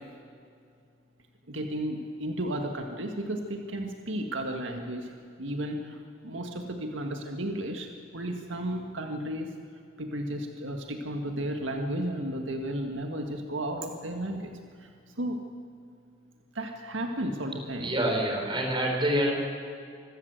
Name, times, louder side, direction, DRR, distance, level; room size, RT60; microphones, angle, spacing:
voice 1, 1.5-5.1 5.4-9.5 10.0-14.5 14.8-14.9 15.2-15.4 16.6-18.0, right 1 dB, 80° right, 3 dB, 1.8 m, -33 dB
voice 2, 17.7-19.3, equal, 25° right, 2 dB, 4.5 m, -26 dB
25.5 x 14.5 x 8.1 m, 2.3 s
head